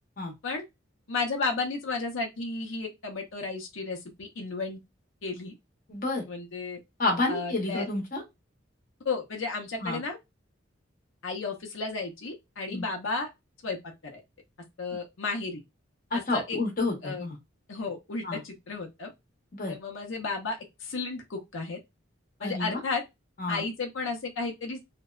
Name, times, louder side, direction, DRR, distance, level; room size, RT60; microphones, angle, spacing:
voice 1, 1.1-4.8 5.2-5.5 6.3-6.8 7.3-7.9 9.0-10.2 11.2-13.3 13.6-14.2 14.8-15.6 16.1-16.6 17.0-17.3 17.7-19.1 19.7-21.8 22.4-23.0 23.5-24.8, left 3 dB, 80° left, 0.6 m, -33 dB
voice 2, 5.9-6.2 7.0-8.2 9.8-10.0 12.7-12.8 16.1-17.4 18.2-18.4 19.5-19.7 22.4-22.8 23.4-23.6, left 2 dB, 45° left, 0.8 m, -29 dB
2.6 x 2.1 x 2.3 m
head